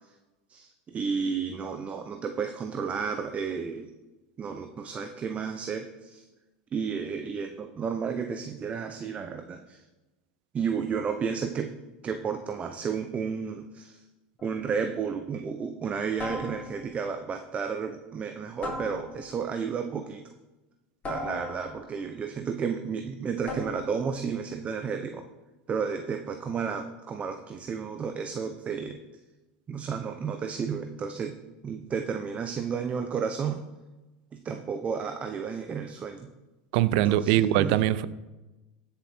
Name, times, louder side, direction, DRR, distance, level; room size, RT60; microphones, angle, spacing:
voice 1, 0.5-3.9 4.4-6.3 6.7-9.8 10.5-11.7 12.0-14.0 14.4-20.2 21.0-25.3 25.7-29.0 29.7-31.4 31.6-33.6 34.3-36.3 37.0-37.8, right 6 dB, 30° right, 7 dB, 0.8 m, -32 dB
sound 1, 14.4-14.7 16.2-17.0 18.6-19.4 21.0-22.0 23.5-24.0, left 2 dB, 30° left, 4.0 m, -38 dB
voice 2, 36.7-38.1, right 13 dB, 70° right, 17 dB, 0.6 m, -22 dB
15.5 x 7.1 x 4.4 m, 1.1 s
supercardioid pair, 120°, 5 cm